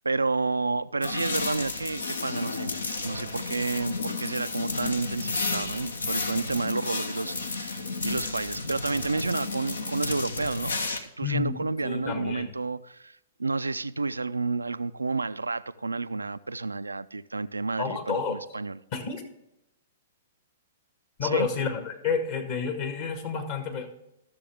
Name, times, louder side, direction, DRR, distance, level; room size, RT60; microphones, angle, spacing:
voice 1, 0.0-2.7 3.0-10.7 11.0-18.8 21.2-21.5, right 3 dB, 90° right, 0.3 m, -30 dB
sound 1, 1.0-11.0, left 3 dB, 80° left, 1.0 m, -32 dB
voice 2, 11.2-12.5 17.8-18.4 18.9-19.2 21.2-23.9, left 6 dB, 50° left, 1.6 m, -30 dB
14.0 x 6.8 x 3.5 m
figure-of-eight pair, 115°, 0 cm